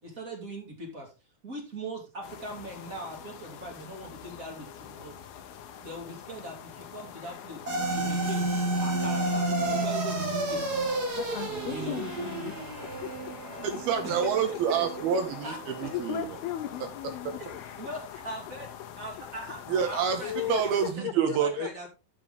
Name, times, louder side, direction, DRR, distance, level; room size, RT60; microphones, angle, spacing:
voice 1, 0.0-1.1 1.4-5.2 5.8-10.6 11.7-12.0 14.0-14.8 15.3-16.0 17.4-18.7 19.0-21.9, right 1 dB, 25° right, 0 dB, 2.3 m, -41 dB
sound 1, 2.2-20.9, left 9 dB, 70° left, 2.6 m, -45 dB
sound 2, 7.7-16.2, right 2 dB, 45° right, 1.2 m, -31 dB
voice 2, 11.2-12.5 13.0-13.1 15.8-17.6 20.2-20.6 21.0-21.9, left 13 dB, 85° left, 12 dB, 2.2 m, -36 dB
voice 3, 13.6-16.3 16.8-16.9 17.2-17.4 19.7-20.2 20.5-21.9, right 7 dB, 70° right, 6 dB, 2.7 m, -28 dB
12.0 x 6.0 x 3.8 m, 0.28 s
omnidirectional pair, 5.2 m